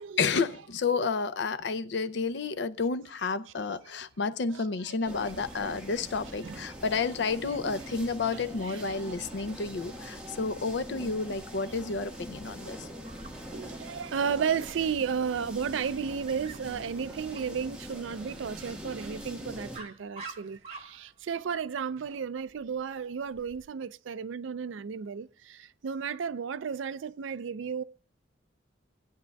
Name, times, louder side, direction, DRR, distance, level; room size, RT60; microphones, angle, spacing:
voice 1, 0.2-12.9, left 4 dB, 65° left, 0.5 m, -31 dB
voice 2, 4.5-5.0 5.5-5.7 6.4-6.7 8.6-8.8 9.1-9.2 12.7-12.8 13.5-27.8, right 6 dB, 80° right, 0.4 m, -33 dB
sound 1, 5.1-19.8, equal, 5° right, 1.5 m, -43 dB
Dog, 13.0-23.6, right 4 dB, 30° right, 1.9 m, -51 dB
18.5 x 9.4 x 2.3 m
head